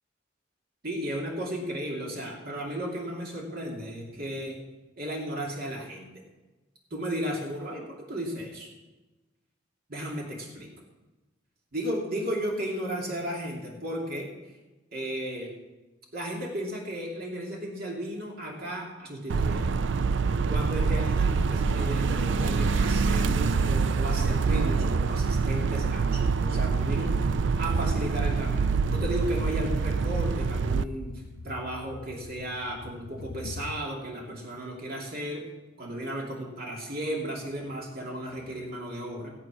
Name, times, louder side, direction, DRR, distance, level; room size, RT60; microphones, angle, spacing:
voice 1, 0.8-4.6 5.0-6.1 6.9-8.7 9.9-10.7 11.7-14.6 14.9-15.5 16.1-19.7 20.5-35.5 35.8-39.3, equal, 55° right, -2 dB, 2.7 m, -34 dB
sound 1, 19.3-30.8, right 4 dB, 75° right, 0.5 m, -25 dB
sound 2, 28.4-33.8, left 4 dB, 50° left, 0.5 m, -42 dB
18.0 x 8.3 x 6.2 m, 1.1 s
head